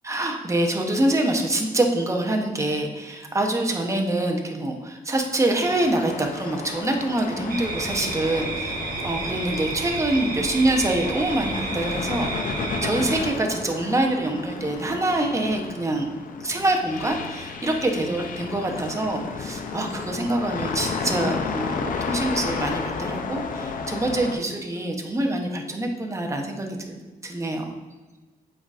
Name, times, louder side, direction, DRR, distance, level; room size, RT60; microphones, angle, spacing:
voice 1, 0.0-16.1 16.4-27.7, right 1 dB, 20° right, 2 dB, 0.9 m, -25 dB
sound 1, 5.6-24.4, left 5 dB, 65° left, 0.6 m, -33 dB
sound 2, 7.5-13.2, right 3 dB, 80° right, 1.1 m, -31 dB
7.8 x 4.9 x 2.5 m, 1.2 s
wide cardioid pair, 115°, 15 cm